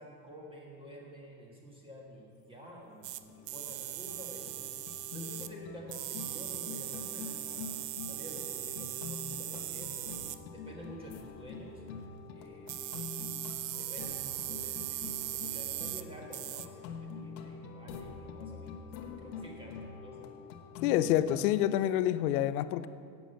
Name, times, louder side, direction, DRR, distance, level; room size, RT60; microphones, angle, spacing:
voice 1, 0.0-4.7 5.1-7.7 8.1-10.2 10.5-11.8 12.3-13.3 13.8-20.5, equal, 10° right, -2 dB, 1.5 m, -50 dB
sound 1, 2.7-2.8 3.0-21.6, left 5 dB, 85° left, 1.4 m, -45 dB
sound 2, 3.0-3.2 3.5-5.5 5.9-10.4 12.7-16.0 16.3-16.7, right 15 dB, 85° right, 0.7 m, -39 dB
voice 2, 20.8-22.9, left 12 dB, 60° left, 14 dB, 0.6 m, -27 dB
11.5 x 8.4 x 7.8 m, 2.5 s
supercardioid pair, 160°, 49 cm